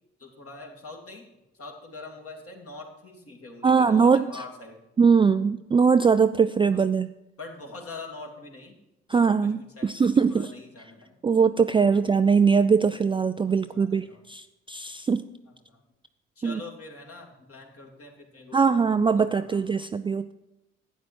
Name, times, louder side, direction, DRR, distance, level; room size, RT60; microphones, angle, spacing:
voice 1, 0.2-1.2 1.5-4.8 6.7-6.8 7.4-8.8 9.1-11.2 11.9-12.0 13.6-14.2 15.7-15.8 16.4-18.7 19.2-19.8, left 3 dB, 45° left, 1 dB, 2.8 m, -44 dB
voice 2, 3.6-4.2 5.0-7.1 9.1-10.5 11.2-15.3 16.4-16.6 18.5-20.3, right 5 dB, 15° right, 11 dB, 0.3 m, -21 dB
12.5 x 9.2 x 4.6 m, 0.95 s
figure-of-eight pair, 40°, 33 cm